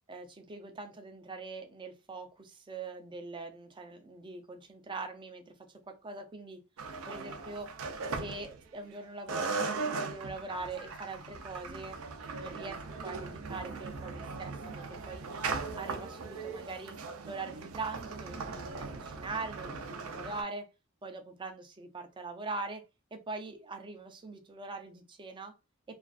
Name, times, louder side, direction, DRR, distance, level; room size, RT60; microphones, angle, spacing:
voice 1, 0.1-6.6 7.1-7.7 8.1-12.0 12.4-15.3 15.8-17.0 17.3-20.7 21.0-22.8 23.1-25.5, right 3 dB, 20° right, 4 dB, 0.4 m, -42 dB
sound 1, 6.8-8.9 9.3-20.4, right 4 dB, 80° right, 0.5 m, -39 dB
2.4 x 2.4 x 2.3 m, 0.27 s
head